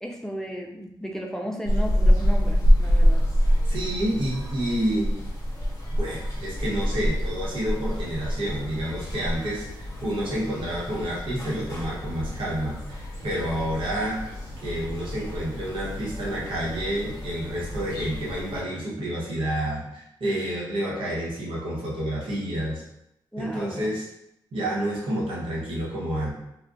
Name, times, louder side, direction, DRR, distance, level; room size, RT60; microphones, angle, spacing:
voice 1, 0.0-3.3 23.3-23.9, equal, 5° left, 0 dB, 0.4 m, -34 dB
sound 1, 1.7-18.6, equal, 40° left, 1.0 m, -26 dB
voice 2, 3.6-5.1 5.9-14.2 14.6-22.8 23.4-24.1 24.5-26.3, right 1 dB, 85° right, -5 dB, 1.0 m, -29 dB
2.3 x 2.3 x 3.8 m, 0.83 s
wide cardioid pair, 105°, 9 cm